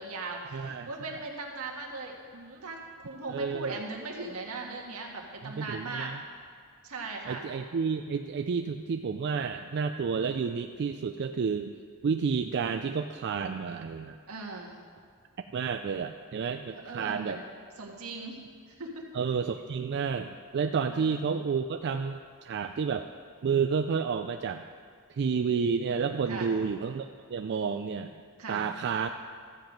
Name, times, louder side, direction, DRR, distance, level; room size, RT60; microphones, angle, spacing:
voice 1, 0.0-6.1 6.8-7.4 14.3-14.7 16.7-17.4 17.8-18.4 18.7-19.1 20.9-21.1 26.3-26.5 28.4-28.6, right 3 dB, 80° right, 0 dB, 1.6 m, -39 dB
voice 2, 0.5-0.9 3.3-3.8 5.4-6.2 7.3-11.7 12.0-14.2 15.5-17.4 19.1-23.1 23.4-24.6 25.1-28.1 28.5-29.1, right 6 dB, 50° right, 7 dB, 0.3 m, -30 dB
13.0 x 7.8 x 5.1 m, 2.1 s
head